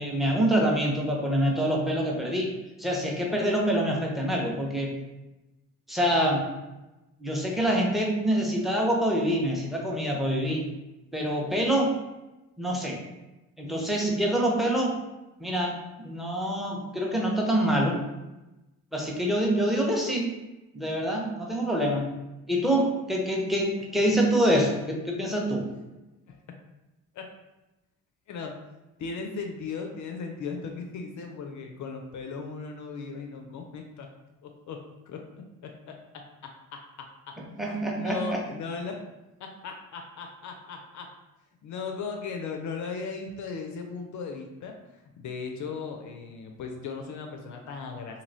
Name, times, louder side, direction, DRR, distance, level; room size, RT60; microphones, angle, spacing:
voice 1, 0.0-4.9 5.9-6.5 7.2-10.7 11.1-12.0 12.6-13.0 13.6-15.0 15.4-18.0 18.9-20.3 20.7-22.1 22.5-25.7 37.6-38.4, equal, ahead, -1 dB, 0.6 m, -26 dB
voice 2, 28.3-28.6 29.0-34.1 34.4-35.3 35.6-37.4 37.9-39.0 39.4-41.1 41.6-48.2, left 5 dB, 45° left, 3 dB, 0.5 m, -37 dB
2.9 x 2.7 x 2.6 m, 1.0 s
hypercardioid pair, 45°, 43 cm